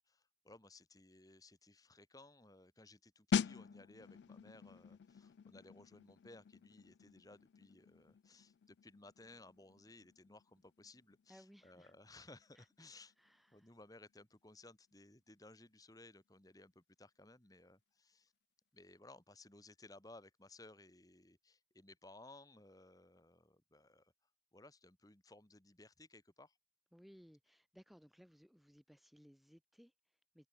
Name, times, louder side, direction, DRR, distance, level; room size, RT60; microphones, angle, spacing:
voice 1, 0.0-13.1 13.5-18.3 18.7-24.1 24.5-26.6, left 2 dB, 20° left, 1.8 m, -60 dB
sound 1, 3.3-13.8 14.1-14.3, left 6 dB, 65° left, 0.3 m, -44 dB
voice 2, 11.3-12.2 12.5-12.9 13.2-13.7 26.9-30.5, equal, ahead, 1.5 m, -63 dB
head